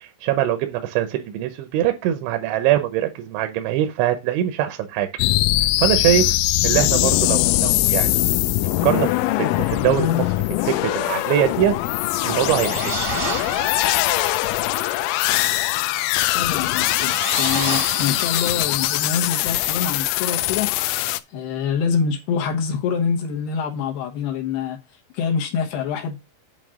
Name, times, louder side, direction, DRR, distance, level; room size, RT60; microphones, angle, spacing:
voice 1, 0.0-5.1 5.8-6.3 6.6-8.2 8.6-9.1 9.6-11.7 12.2-12.8, right 12 dB, 80° right, 3.0 m, -22 dB
sound 1, 5.2-21.2, left 17 dB, 90° left, 3.0 m, -21 dB
sound 2, 12.1-14.2 16.5-18.9, right 3 dB, 45° right, 0.9 m, -30 dB
voice 2, 16.3-20.7 21.3-24.8 25.1-26.2, left 6 dB, 70° left, 2.6 m, -25 dB
8.7 x 3.3 x 6.3 m
omnidirectional pair, 5.5 m